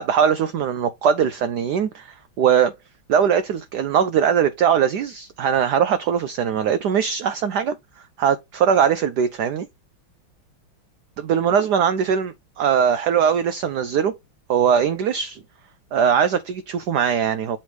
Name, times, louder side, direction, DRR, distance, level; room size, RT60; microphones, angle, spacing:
voice 1, 0.0-2.7 3.1-7.8 8.2-9.7 11.2-14.2 14.5-15.4 15.9-17.6, right 8 dB, 80° right, 0.9 m, -20 dB
7.2 x 3.2 x 4.8 m
omnidirectional pair, 2.3 m